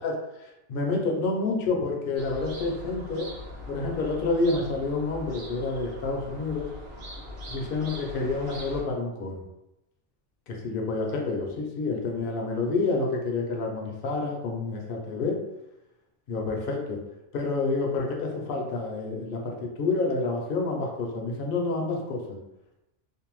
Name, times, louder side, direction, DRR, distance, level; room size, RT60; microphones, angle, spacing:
voice 1, 0.0-3.3 3.7-6.7 7.5-9.3 10.6-15.4 16.3-17.0 17.3-22.4, left 3 dB, 60° left, 0 dB, 0.7 m, -28 dB
sound 1, 2.2-8.8, left 1 dB, 65° right, 0.8 m, -41 dB
2.6 x 2.1 x 3.0 m, 0.91 s
omnidirectional pair, 1.2 m